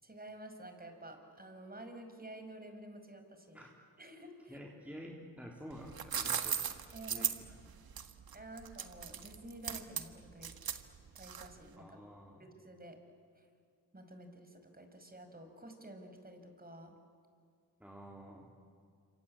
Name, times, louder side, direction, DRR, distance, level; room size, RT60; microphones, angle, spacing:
voice 1, 0.0-3.6 4.0-4.6 6.9-7.3 8.3-10.5 11.1-11.9 12.4-13.0 13.4-13.5 13.9-17.0, right 1 dB, 20° right, 6 dB, 5.5 m, -50 dB
voice 2, 4.5-7.7 11.8-12.5 17.8-18.5, equal, 5° right, -1 dB, 3.7 m, -50 dB
sound 1, 5.7-11.7, right 8 dB, 55° right, 1.8 m, -38 dB
27.0 x 25.0 x 8.6 m, 2.2 s
supercardioid pair, 50°, 43 cm